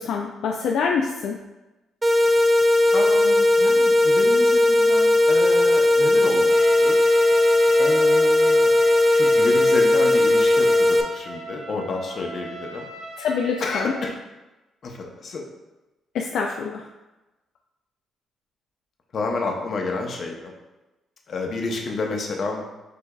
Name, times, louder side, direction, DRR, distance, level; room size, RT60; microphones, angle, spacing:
voice 1, 0.0-1.4 13.2-13.9 16.1-16.8, left 5 dB, 75° left, 0 dB, 0.3 m, -25 dB
sound 1, 2.0-11.0, left 2 dB, 20° right, 0.4 m, -17 dB
voice 2, 2.9-7.0 7.8-8.7 9.1-12.9 13.6-14.1 14.8-15.4 19.1-20.5 21.3-22.6, left 3 dB, 55° left, 1 dB, 0.7 m, -29 dB
Trumpet, 6.5-14.2, right 2 dB, 50° right, 0.7 m, -38 dB
6.5 x 2.6 x 2.3 m, 1.1 s
cardioid pair, 90°, 0 cm